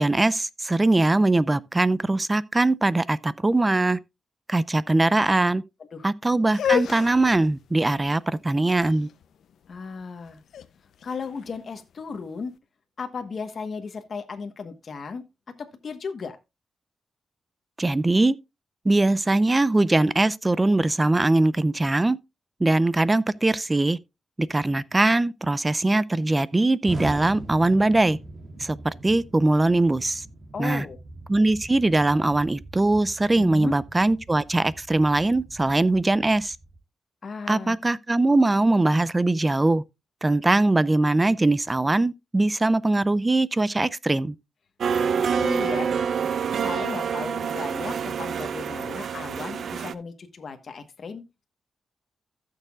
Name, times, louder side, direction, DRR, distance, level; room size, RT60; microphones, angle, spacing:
voice 1, 0.0-4.0 4.5-5.6 6.0-9.1 17.8-18.4 18.8-22.2 22.6-24.0 24.4-28.2 28.6-30.2 30.6-30.9 31.3-36.6 37.5-39.8 40.2-44.3, right 2 dB, 20° right, 0.5 m, -21 dB
sound 1, 6.4-12.4, left 9 dB, 90° left, 0.5 m, -32 dB
voice 2, 9.7-10.4 11.0-12.5 13.0-15.2 15.6-16.4 30.5-31.0 33.3-33.8 37.2-37.8 45.4-46.0 46.6-51.2, left 5 dB, 55° left, 1.2 m, -35 dB
Explosion, 26.8-36.8, right 2 dB, 40° right, 2.8 m, -42 dB
sound 2, 44.8-49.9, right 6 dB, 70° right, 0.5 m, -27 dB
15.5 x 6.7 x 2.3 m
cardioid pair, 90°, 0 cm